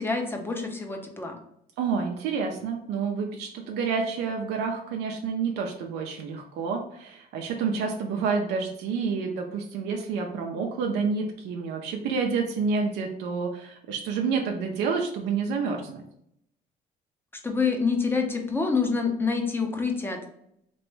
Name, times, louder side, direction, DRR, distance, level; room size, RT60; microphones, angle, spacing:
voice 1, 0.0-1.4 17.4-20.2, left 4 dB, 15° left, 3 dB, 0.7 m, -27 dB
voice 2, 1.8-16.0, right 5 dB, 85° right, 1 dB, 0.5 m, -29 dB
3.3 x 3.0 x 3.1 m, 0.75 s
cardioid pair, 110°, 17 cm